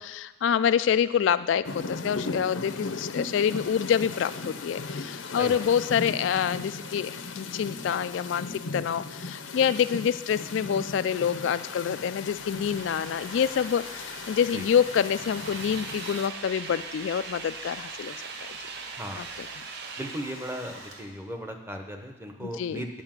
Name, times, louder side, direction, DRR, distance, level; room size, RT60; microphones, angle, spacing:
voice 1, 0.0-18.2 19.2-19.5 22.4-22.8, left 8 dB, 70° left, 13 dB, 0.3 m, -27 dB
sound 1, 1.6-16.3, left 3 dB, 90° left, 0.8 m, -37 dB
Domestic sounds home sounds, 12.1-21.3, right 1 dB, 90° right, 1.8 m, -44 dB
sound 2, 13.4-20.2, right 6 dB, 55° right, 0.5 m, -42 dB
voice 2, 20.0-22.9, equal, 10° right, 4 dB, 0.8 m, -36 dB
9.7 x 5.6 x 7.4 m, 1.0 s
head